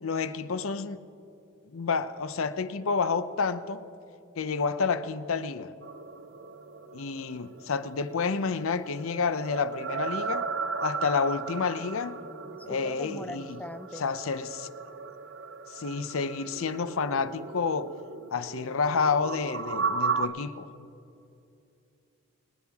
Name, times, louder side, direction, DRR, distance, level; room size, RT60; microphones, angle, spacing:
voice 1, 0.0-1.0 1.7-3.8 4.4-5.7 6.9-10.5 10.8-12.2 12.7-13.6 14.0-14.7 15.7-17.9 18.3-20.7, left 5 dB, 75° left, 0.6 m, -29 dB
sound 1, 5.8-20.3, right 5 dB, 55° right, 0.5 m, -36 dB
voice 2, 12.2-14.1, left 1 dB, 5° left, 0.3 m, -42 dB
26.5 x 9.9 x 3.5 m
head